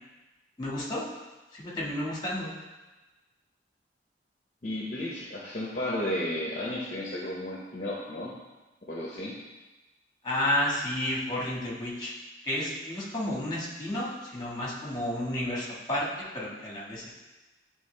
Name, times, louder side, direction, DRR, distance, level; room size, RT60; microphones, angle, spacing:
voice 1, 0.6-1.1 1.5-2.5 10.2-12.1 12.4-16.1 16.3-17.1, left 1 dB, 25° left, -5 dB, 1.5 m, -31 dB
voice 2, 4.6-8.3 8.9-9.3, left 1 dB, 45° left, -4 dB, 0.8 m, -33 dB
9.1 x 3.3 x 3.3 m, 1.1 s
head